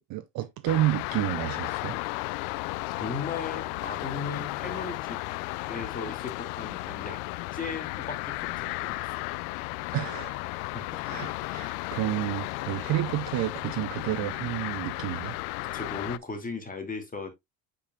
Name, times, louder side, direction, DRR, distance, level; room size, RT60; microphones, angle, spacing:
voice 1, 0.1-2.0 9.9-10.6 11.1-15.4 15.6-15.8, right 15 dB, 45° right, 0.7 m, -30 dB
sound 1, 0.7-16.2, left 22 dB, 75° left, 0.6 m, -34 dB
voice 2, 3.0-5.2 5.7-7.2 7.5-9.3 10.7-10.9 15.7-17.3, left 4 dB, 15° left, 2.5 m, -37 dB
8.7 x 5.2 x 2.3 m
supercardioid pair, 110°, 49 cm